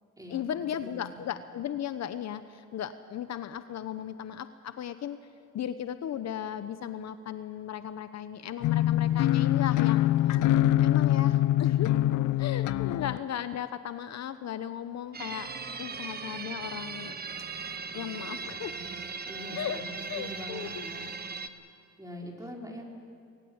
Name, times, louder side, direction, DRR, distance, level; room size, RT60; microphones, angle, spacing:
voice 1, 0.3-5.2 5.5-10.4 10.8-11.9 12.4-15.5 15.8-17.2 17.9-18.7 19.5-19.8 20.1-20.9, left 10 dB, 60° left, 12 dB, 0.9 m, -36 dB
voice 2, 0.8-1.2 19.3-21.0 22.0-22.9, equal, 10° right, 0 dB, 4.6 m, -43 dB
sound 1, 8.6-13.2, left 13 dB, 80° left, 0.6 m, -24 dB
sound 2, 15.1-21.5, right 5 dB, 30° right, 1.3 m, -39 dB
sound 3, 15.3-21.1, right 7 dB, 75° right, 2.0 m, -49 dB
21.5 x 18.0 x 8.8 m, 2.3 s
cardioid pair, 90°, 30 cm